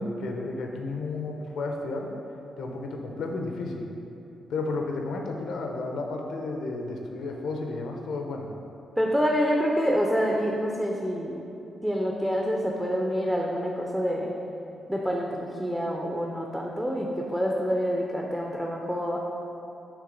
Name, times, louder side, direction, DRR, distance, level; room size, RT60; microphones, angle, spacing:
voice 1, 0.0-2.1 2.6-3.9 4.5-8.5, left 3 dB, 80° left, 2 dB, 0.7 m, -32 dB
voice 2, 9.0-11.4 11.8-14.3 14.9-19.2, equal, ahead, -1 dB, 0.4 m, -27 dB
6.6 x 3.2 x 5.2 m, 2.8 s
wide cardioid pair, 165°, 0 cm